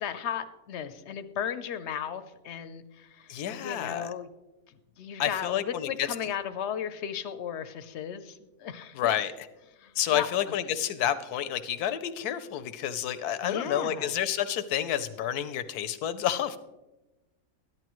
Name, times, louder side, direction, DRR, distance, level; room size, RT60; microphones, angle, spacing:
voice 1, 0.0-4.3 4.7-9.1 9.8-10.3 10.6-10.7 13.4-14.1, left 8 dB, 60° left, 12 dB, 0.7 m, -36 dB
voice 2, 3.3-4.1 5.2-6.1 9.0-9.3 10.0-16.6, left 10 dB, 85° left, 11 dB, 1.2 m, -29 dB
13.5 x 11.0 x 3.0 m, 1.0 s
omnidirectional pair, 1.6 m